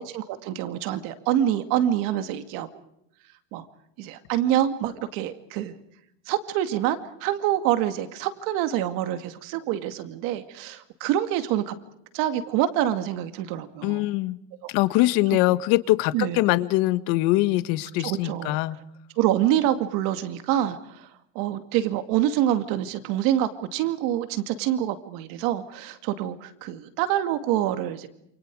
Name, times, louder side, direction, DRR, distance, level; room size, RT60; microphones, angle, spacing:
voice 1, 0.0-2.8 3.5-3.7 4.0-5.8 6.3-11.7 12.1-14.0 14.6-14.7 16.1-16.4 18.0-18.6 19.2-21.1 21.3-28.1, right 12 dB, 65° right, 9 dB, 2.4 m, -26 dB
voice 2, 13.8-14.4 14.7-18.7, left 18 dB, 65° left, 13 dB, 1.6 m, -23 dB
28.5 x 28.0 x 4.9 m, 0.76 s
cardioid pair, 160°, 36 cm